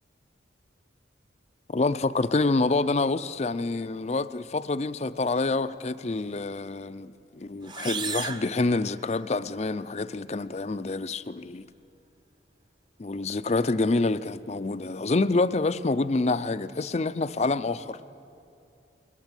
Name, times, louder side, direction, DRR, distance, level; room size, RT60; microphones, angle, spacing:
voice 1, 1.7-11.6 13.0-18.0, left 3 dB, 35° left, 0.5 m, -27 dB
sound 1, 7.6-9.5, right 6 dB, 25° right, 0.8 m, -36 dB
21.5 x 19.5 x 9.0 m
head